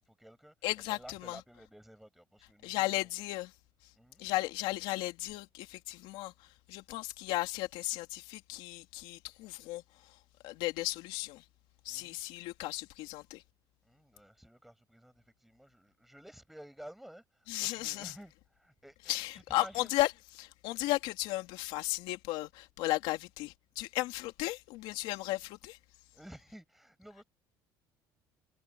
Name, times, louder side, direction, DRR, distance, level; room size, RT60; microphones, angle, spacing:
voice 1, 0.0-3.1 4.0-4.2 11.9-12.2 13.8-19.9 26.1-27.2, equal, ahead, 7.1 m, -53 dB
voice 2, 0.6-1.4 2.6-3.5 4.2-6.3 6.7-9.8 10.4-11.4 11.8-13.4 17.5-18.1 19.1-25.8, left 18 dB, 80° left, 2.9 m, -35 dB
cardioid pair, 150°, 9 cm